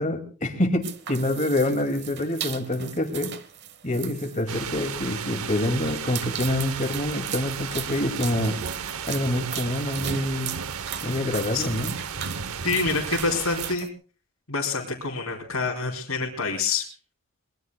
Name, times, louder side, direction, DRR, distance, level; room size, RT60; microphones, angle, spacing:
voice 1, 0.0-3.3 3.8-8.6 9.1-10.5 11.0-12.0, left 1 dB, 35° left, 7 dB, 2.2 m, -26 dB
sound 1, 0.8-13.9, right 10 dB, 50° right, 1.1 m, -38 dB
sound 2, 4.5-13.8, right 6 dB, 75° right, 0.8 m, -34 dB
voice 2, 12.6-13.9 14.5-16.9, left 4 dB, 80° left, -2 dB, 3.0 m, -27 dB
24.0 x 21.0 x 2.3 m, 0.38 s
head